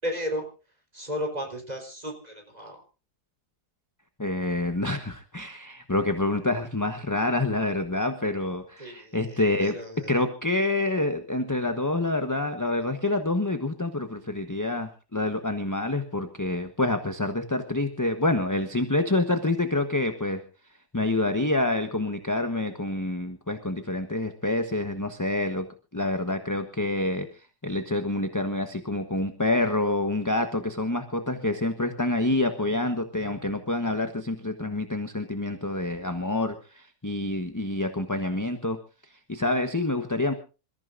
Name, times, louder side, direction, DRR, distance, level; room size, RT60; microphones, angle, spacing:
voice 1, 0.0-0.5 0.9-2.8 8.8-10.1, equal, 25° right, 2 dB, 4.2 m, -34 dB
voice 2, 4.2-20.4 20.9-25.7 25.9-38.8 39.1-40.3, left 2 dB, 15° left, 7 dB, 1.0 m, -27 dB
27.5 x 15.0 x 2.6 m, 0.33 s
omnidirectional pair, 1.7 m